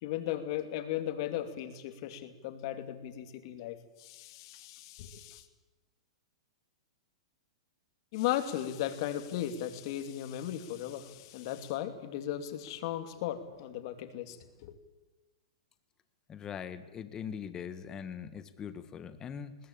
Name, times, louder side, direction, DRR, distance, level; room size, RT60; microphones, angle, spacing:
voice 1, 0.0-5.4 8.1-14.4 14.6-14.7, left 12 dB, 45° left, 9 dB, 2.7 m, -36 dB
voice 2, 16.3-19.6, left 7 dB, 20° left, 12 dB, 1.5 m, -41 dB
21.5 x 19.0 x 8.9 m, 1.2 s
hypercardioid pair, 150°, 3 cm